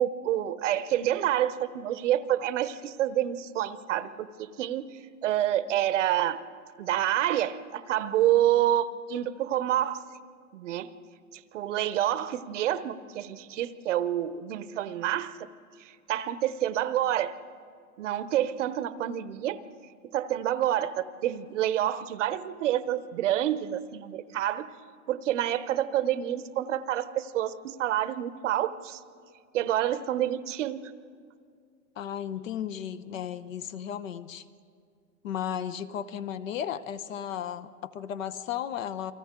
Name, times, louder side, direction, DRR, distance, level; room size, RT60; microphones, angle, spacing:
voice 1, 0.0-4.9 5.2-6.4 6.8-10.0 10.5-10.9 11.3-15.4 15.8-17.3 18.0-19.6 20.1-24.7 25.1-29.0 29.5-30.8, right 12 dB, 50° right, 14 dB, 0.8 m, -28 dB
voice 2, 32.0-34.4 35.2-39.1, left 9 dB, 55° left, 14 dB, 1.0 m, -34 dB
29.5 x 24.5 x 3.7 m, 2.2 s
hypercardioid pair, 150°, 46 cm